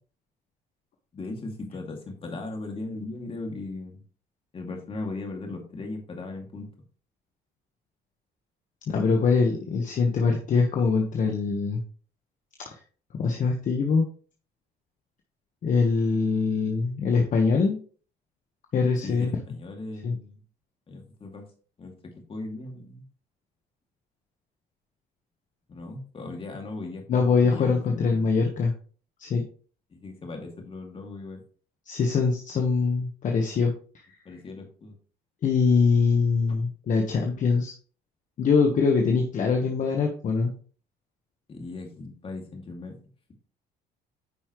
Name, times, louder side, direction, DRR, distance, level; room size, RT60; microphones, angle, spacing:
voice 1, 1.1-4.0 4.5-6.7 19.0-20.4 20.9-21.5 21.8-23.0 25.7-28.1 29.9-31.4 34.2-35.0 36.5-36.6 41.5-42.9, left 2 dB, 35° left, 2 dB, 2.5 m, -38 dB
voice 2, 8.9-11.8 12.6-12.7 13.1-14.0 15.6-17.8 18.7-19.3 20.0-20.2 27.1-28.7 29.2-29.4 31.9-33.7 35.4-37.7 38.4-40.5, left 4 dB, 50° left, 2 dB, 1.3 m, -23 dB
9.7 x 5.5 x 3.1 m, 0.41 s
cardioid pair, 110°, 17 cm